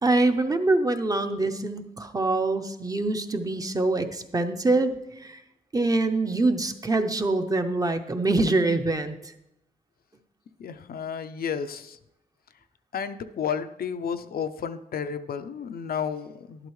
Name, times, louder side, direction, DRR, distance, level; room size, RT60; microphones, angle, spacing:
voice 1, 0.0-5.4 5.7-9.3, right 2 dB, 20° right, 7 dB, 0.6 m, -25 dB
voice 2, 10.6-12.0 12.9-16.7, left 7 dB, 65° left, 10 dB, 0.5 m, -32 dB
11.5 x 11.5 x 3.2 m, 0.87 s
wide cardioid pair, 145°, 16 cm